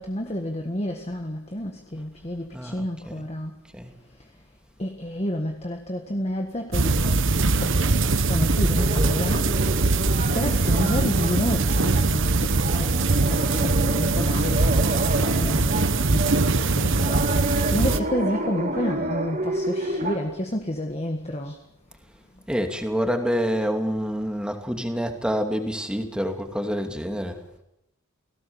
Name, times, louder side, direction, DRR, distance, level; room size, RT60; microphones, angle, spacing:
voice 1, 0.0-3.5 4.8-7.3 7.6-9.5 10.3-21.6, left 1 dB, 30° left, 1.7 m, -30 dB
voice 2, 2.5-3.2 3.7-3.9 22.5-27.4, equal, 5° right, 2.6 m, -27 dB
sound 1, 6.7-18.0, right 3 dB, 60° right, 1.2 m, -22 dB
sound 2, 8.8-20.2, right 1 dB, 40° right, 3.8 m, -30 dB
29.5 x 18.0 x 7.1 m
head